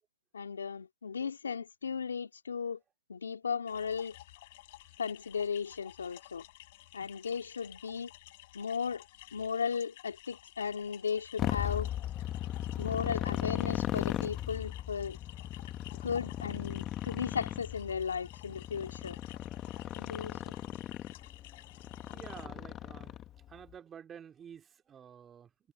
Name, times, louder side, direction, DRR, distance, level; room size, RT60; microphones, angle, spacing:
voice 1, 0.3-2.8 3.1-4.2 5.0-6.4 6.9-8.1 8.5-9.0 9.3-11.9 12.8-15.2 16.0-19.2 20.0-20.5, left 6 dB, 85° left, 2.4 m, -36 dB
sound 1, 3.7-22.5, left 18 dB, 40° left, 7.9 m, -54 dB
Motorcycle, 11.4-23.5, left 12 dB, 20° left, 1.1 m, -37 dB
voice 2, 22.1-23.2 23.5-25.7, right 8 dB, 15° right, 2.2 m, -50 dB
hypercardioid pair, 150°, 0 cm